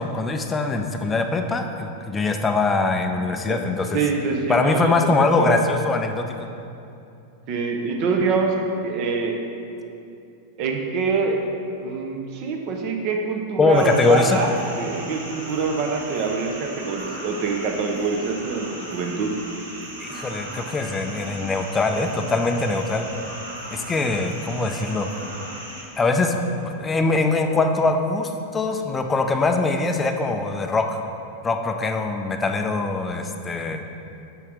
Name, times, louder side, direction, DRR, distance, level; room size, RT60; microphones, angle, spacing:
voice 1, 0.0-4.0 4.5-6.5 13.6-14.4 20.0-23.1 23.7-25.1 26.0-31.0 31.4-33.8, left 3 dB, 15° left, 4 dB, 0.4 m, -22 dB
voice 2, 3.9-4.9 5.4-5.6 7.5-8.6 8.8-9.4 10.6-11.4 11.8-19.3, right 4 dB, 40° right, 3 dB, 0.7 m, -25 dB
sound 1, 13.7-25.8, right 1 dB, 70° right, 1.5 m, -37 dB
5.6 x 5.4 x 4.7 m, 2.7 s
figure-of-eight pair, 90°, 0 cm